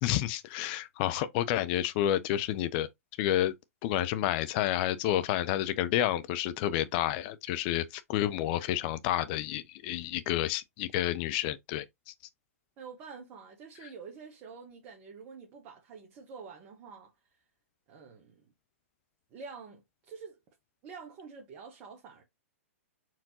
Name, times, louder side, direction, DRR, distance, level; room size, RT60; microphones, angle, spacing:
voice 1, 0.0-2.9 3.2-3.5 3.8-11.8 13.8-13.9, left 13 dB, 40° left, 0.6 m, -30 dB
voice 2, 12.8-17.1 17.9-18.4 19.3-20.4 20.8-22.2, right 5 dB, 35° right, 1.2 m, -47 dB
4.6 x 3.7 x 2.8 m
hypercardioid pair, 115°, 8 cm